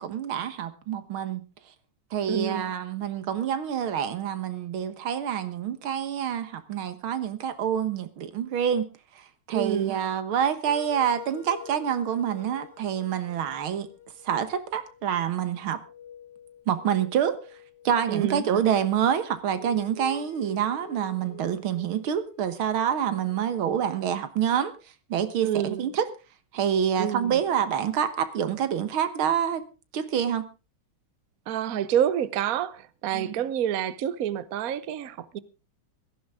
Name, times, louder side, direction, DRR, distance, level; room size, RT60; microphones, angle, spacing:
voice 1, 0.0-1.4 2.1-8.9 9.2-13.9 14.3-15.8 16.7-17.4 17.8-24.7 25.1-26.1 26.5-29.6 29.9-30.5 33.1-33.3, right 9 dB, 85° right, 2.1 m, -27 dB
voice 2, 2.3-2.6 9.5-9.9 18.1-18.5 25.4-25.8 27.0-27.4 31.5-35.4, right 10 dB, 55° right, 1.1 m, -28 dB
sound 1, 10.6-15.0 15.4-15.5 15.8-18.4 19.0-23.6, left 6 dB, 60° left, 2.5 m, -46 dB
16.5 x 15.0 x 3.6 m
omnidirectional pair, 2.2 m